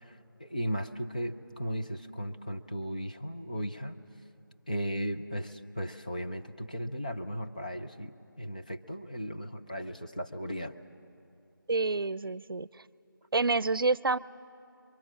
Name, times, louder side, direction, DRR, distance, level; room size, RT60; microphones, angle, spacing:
voice 1, 0.4-3.9 4.7-10.7, equal, 20° left, 4 dB, 0.5 m, -36 dB
voice 2, 11.7-12.7 13.3-14.2, right 3 dB, 85° right, 20 dB, 0.6 m, -28 dB
28.5 x 23.5 x 7.4 m, 2.6 s
figure-of-eight pair, 175°, 11 cm